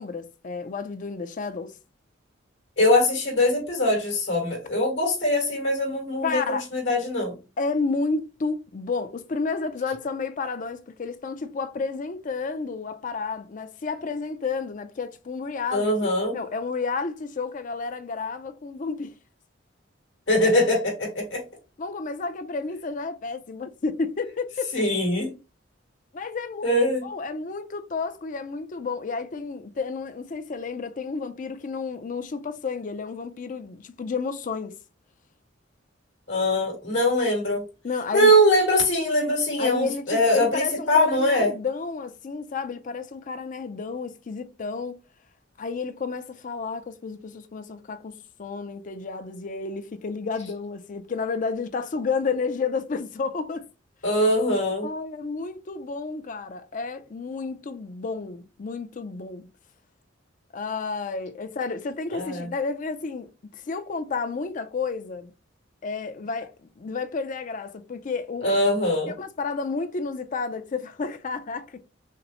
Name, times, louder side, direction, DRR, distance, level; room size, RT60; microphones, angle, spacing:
voice 1, 0.0-1.7 6.2-6.7 7.6-19.2 21.8-24.9 26.1-26.8 27.0-34.8 37.8-38.3 39.6-45.0 45.6-53.7 54.8-59.5 60.5-63.3 63.5-65.3 65.8-68.5 69.1-71.8, left 4 dB, 40° left, 0.4 m, -31 dB
voice 2, 2.8-7.4 15.7-16.4 20.3-21.4 24.7-25.3 26.6-27.0 36.3-37.6 38.1-41.5 54.0-54.9 62.1-62.5 68.4-69.1, left 1 dB, 80° left, 2.4 m, -22 dB
5.7 x 2.0 x 2.9 m
head